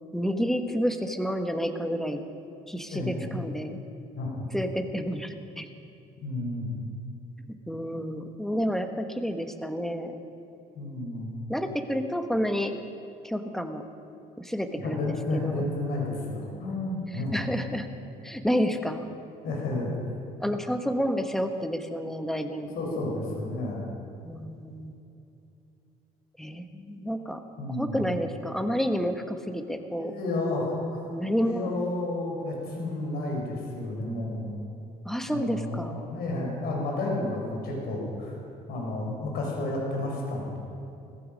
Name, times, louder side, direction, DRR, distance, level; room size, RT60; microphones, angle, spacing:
voice 1, 0.1-2.2 2.7-3.8 4.5-5.7 7.5-10.1 11.5-12.7 13.2-13.8 14.4-15.1 15.4-15.7 17.3-17.9 18.2-19.0 20.4-22.7 24.2-24.9 26.4-27.4 27.8-30.1 31.1-31.7 35.0-35.9, equal, ahead, 6 dB, 1.2 m, -29 dB
voice 2, 2.9-3.3 4.1-4.5 6.2-6.9 10.7-11.3 14.8-17.4 19.4-19.9 22.8-23.8 27.6-28.0 30.0-31.0 31.4-34.5 35.3-38.3 38.7-40.6, left 2 dB, 70° left, -1 dB, 4.6 m, -31 dB
17.5 x 15.0 x 5.3 m, 2.7 s
cardioid pair, 110°, 17 cm